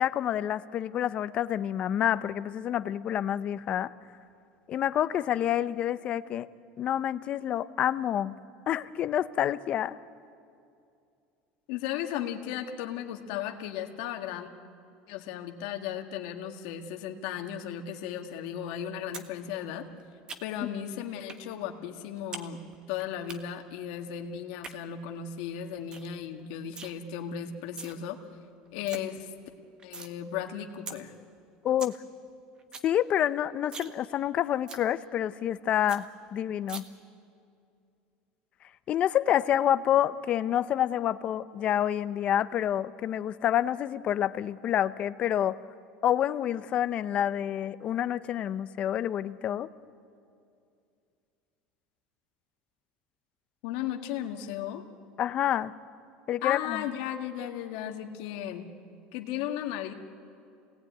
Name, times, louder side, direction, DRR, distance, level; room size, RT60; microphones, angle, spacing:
voice 1, 0.0-3.9 4.7-6.5 6.8-8.4 8.7-10.0 31.6-31.9 32.8-36.8 38.9-45.6 46.0-49.7 55.2-55.7 56.3-56.8, left 11 dB, 40° left, 14 dB, 0.7 m, -28 dB
voice 2, 11.7-14.5 15.1-19.8 20.4-22.6 22.9-28.2 28.7-29.3 29.8-31.1 53.6-54.8 56.4-58.7 59.1-59.9, left 10 dB, 75° left, 4 dB, 1.8 m, -35 dB
sound 1, 19.1-19.3 19.6-20.7 21.3-21.4 21.8-22.5 22.7-23.4 24.4-24.7 25.2-25.3 25.6-25.7 25.9-26.1 26.4-26.9 27.5-27.9 28.4-28.5 28.6-29.0 29.4-30.1 30.5-30.6 30.9-31.0 31.4-31.5 31.6-32.0 32.3-32.4 32.6-32.9 33.2-33.3 33.6-33.9 34.2-34.3 34.7-34.8 35.2-35.3 35.6-35.7 35.9-36.0 36.7-36.8, right 4 dB, 25° right, 1.4 m, -41 dB
27.5 x 18.5 x 9.3 m, 2.5 s
cardioid pair, 140°, 3 cm